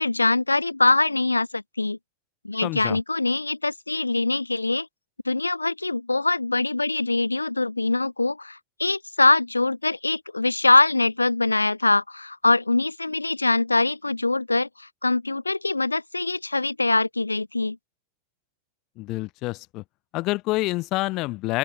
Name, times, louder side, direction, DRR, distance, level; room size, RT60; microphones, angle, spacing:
voice 1, 0.0-2.0 2.4-4.9 5.2-17.8, left 2 dB, 80° left, 0.9 m, -23 dB
voice 2, 2.6-3.0 19.0-19.8 20.1-21.6, left 21 dB, 40° left, 0.5 m, -27 dB
open air
figure-of-eight pair, 90°, 0 cm